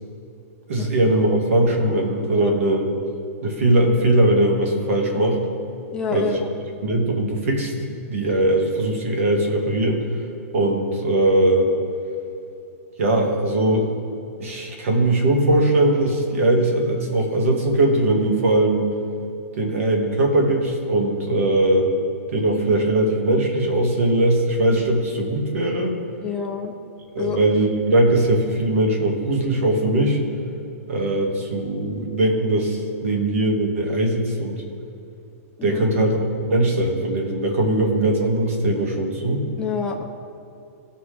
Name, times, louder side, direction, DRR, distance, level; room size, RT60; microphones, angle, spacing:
voice 1, 0.7-2.9 3.4-5.4 6.1-6.4 6.8-10.0 10.5-11.7 13.0-13.9 14.4-18.9 19.6-21.9 22.3-25.9 27.2-30.2 30.9-34.6 35.6-39.4, right 1 dB, 60° right, 2 dB, 1.8 m, -20 dB
voice 2, 5.9-6.5 22.4-22.5 26.2-26.7 27.2-27.4 35.6-35.8 39.6-40.0, left 6 dB, 10° left, -2 dB, 0.5 m, -28 dB
16.5 x 5.7 x 3.4 m, 2.8 s
hypercardioid pair, 175°, 8 cm